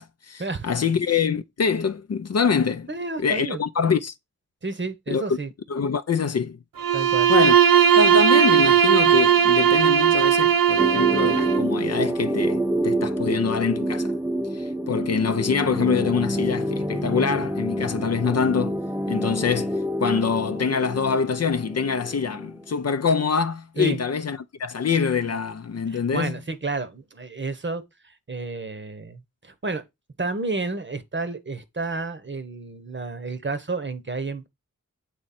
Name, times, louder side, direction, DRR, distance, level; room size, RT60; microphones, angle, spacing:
voice 1, 0.0-2.9 3.2-4.1 5.1-5.2 5.7-6.6 7.3-7.5 8.0-14.1 14.5-18.8 19.1-26.4, left 6 dB, 50° left, 0.5 m, -25 dB
voice 2, 2.9-3.6 4.6-5.5 6.9-7.3 23.8-24.0 25.9-29.8 30.2-34.5, right 3 dB, 35° right, 0.9 m, -31 dB
Bowed string instrument, 6.8-11.7, right 8 dB, 80° right, 0.6 m, -18 dB
sound 1, 10.8-22.7, equal, 5° right, 0.6 m, -27 dB
7.6 x 3.1 x 4.2 m
cardioid pair, 45°, 34 cm